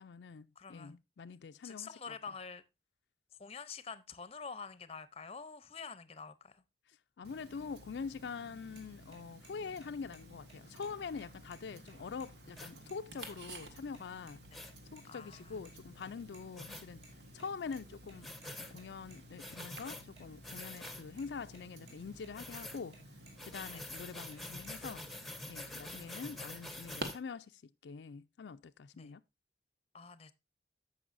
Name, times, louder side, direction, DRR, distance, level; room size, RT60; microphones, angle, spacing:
voice 1, 0.0-2.2 6.9-14.4 14.9-17.0 17.3-18.3 18.6-23.0 23.4-29.2, left 5 dB, 80° left, 0.4 m, -45 dB
voice 2, 0.6-1.0 1.6-2.6 3.4-6.6 14.5-14.6 15.1-15.6 23.7-23.9 25.9-26.4 28.9-29.2 29.9-30.3, left 5 dB, 35° left, 0.6 m, -47 dB
Tick-tock, 7.2-27.0, right 1 dB, 75° right, 1.6 m, -52 dB
sound 1, 8.8-8.9 9.1-9.2 9.4-9.5 9.8-10.2 10.5-10.6 10.8-10.9 11.2-12.3 12.5-12.6 12.9-13.0 13.2-13.6 13.9-14.4 14.6-15.7 16.0-18.5 18.8-20.5 20.8-20.9 21.2-21.6 21.9-22.3 22.6-23.7 23.9-24.7, right 2 dB, 30° right, 4.8 m, -60 dB
sound 2, 12.6-12.7 13.2-13.4 14.5-14.7 16.6-16.8 18.2-18.7 19.4-20.0 20.4-21.0 22.3-22.8 23.4-27.2, left 1 dB, ahead, 0.9 m, -46 dB
14.5 x 5.5 x 2.6 m
head